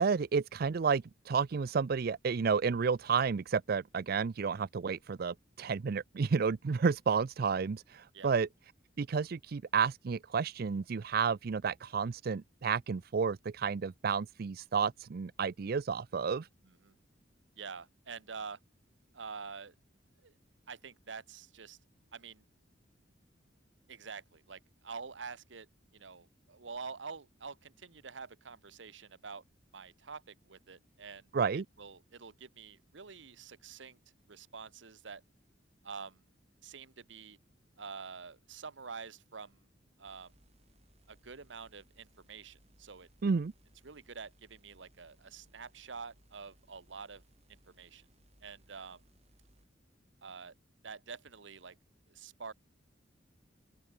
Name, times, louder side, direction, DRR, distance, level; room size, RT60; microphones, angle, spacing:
voice 1, 0.0-8.5 9.0-16.5 31.3-31.6 43.2-43.5, right 5 dB, 55° right, 0.4 m, -31 dB
voice 2, 16.6-16.9 17.6-18.6 19.1-19.7 20.2-20.3 20.7-21.8 22.1-22.4 23.9-25.7 25.9-29.4 29.7-34.0 34.3-35.2 35.8-36.2 36.6-37.4 37.8-39.7 40.0-40.3 41.1-43.1 43.8-47.2 47.5-48.0 48.4-49.0 50.2-50.5 50.8-51.8 52.1-52.5, right 5 dB, 75° right, 1.1 m, -47 dB
sound 1, 40.0-49.7, right 1 dB, 35° right, 7.7 m, -67 dB
open air
head